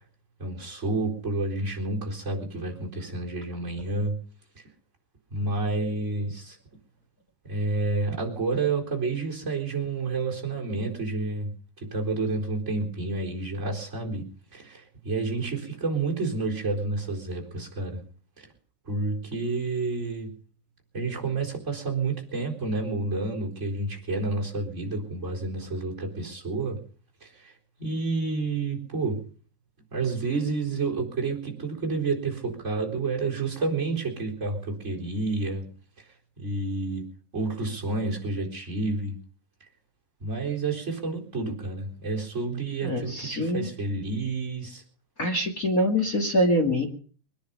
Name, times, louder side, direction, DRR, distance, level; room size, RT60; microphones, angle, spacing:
voice 1, 0.4-4.2 4.5-4.6 5.3-6.6 7.4-11.5 11.8-18.0 18.4-18.5 18.8-20.3 20.9-26.8 27.2-27.5 27.8-29.2 29.9-35.7 36.4-37.1 37.3-39.2 40.2-44.8, right 3 dB, 15° right, -1 dB, 4.0 m, -29 dB
voice 2, 42.8-43.7 45.2-46.8, left 1 dB, 30° left, 1 dB, 1.6 m, -24 dB
23.5 x 10.5 x 5.4 m, 0.43 s
omnidirectional pair, 4.9 m